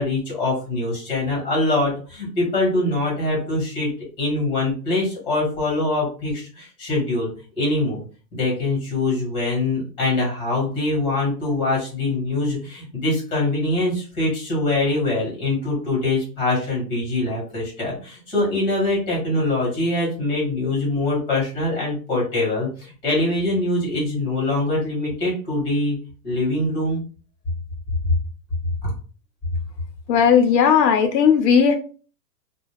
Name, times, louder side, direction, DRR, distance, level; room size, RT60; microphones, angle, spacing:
voice 1, 0.0-3.9 4.2-7.3 7.5-8.0 8.3-25.9 26.2-27.0 28.8-28.9, left 2 dB, 10° left, -4 dB, 1.2 m, -23 dB
voice 2, 30.1-31.7, left 7 dB, 75° left, 7 dB, 0.6 m, -16 dB
2.3 x 2.2 x 3.3 m, 0.38 s
hypercardioid pair, 160°, 50 cm